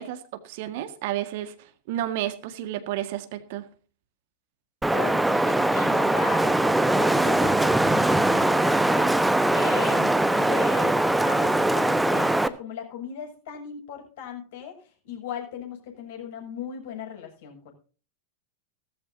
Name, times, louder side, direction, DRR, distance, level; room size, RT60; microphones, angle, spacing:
voice 1, 0.0-3.7, right 13 dB, 50° right, 10 dB, 1.8 m, -32 dB
Wind, 4.8-12.5, right 1 dB, 5° right, 1.1 m, -21 dB
voice 2, 4.9-9.1 9.5-11.0 11.2-17.7, left 8 dB, 55° left, 2 dB, 7.3 m, -38 dB
18.5 x 14.0 x 2.8 m, 0.38 s
figure-of-eight pair, 90°, 0 cm